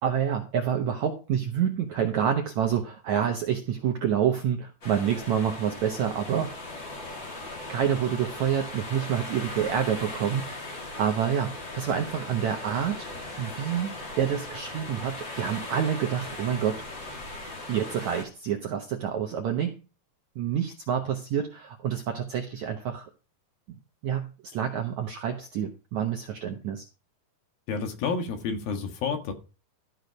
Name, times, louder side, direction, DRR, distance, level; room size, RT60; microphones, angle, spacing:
voice 1, 0.0-6.6 7.4-10.6 11.0-13.1 13.4-16.8 17.7-19.7 20.4-23.1 24.0-26.9, right 8 dB, 70° right, 1.8 m, -28 dB
sound 1, 4.8-18.2, left 2 dB, 30° left, 3.3 m, -39 dB
voice 2, 27.7-29.3, left 5 dB, 65° left, 3.4 m, -30 dB
13.5 x 6.4 x 5.2 m
omnidirectional pair, 4.6 m